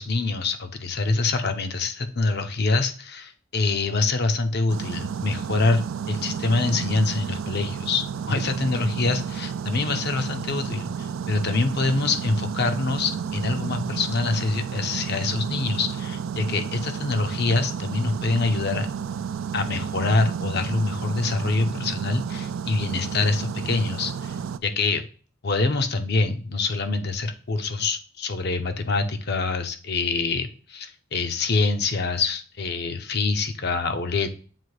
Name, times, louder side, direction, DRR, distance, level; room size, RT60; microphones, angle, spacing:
voice 1, 0.0-18.9 19.5-24.4 24.6-25.0 25.4-34.3, left 3 dB, 55° left, 8 dB, 0.7 m, -25 dB
sound 1, 4.7-24.6, right 7 dB, 85° right, 0.4 m, -31 dB
7.6 x 2.6 x 4.7 m, 0.39 s
head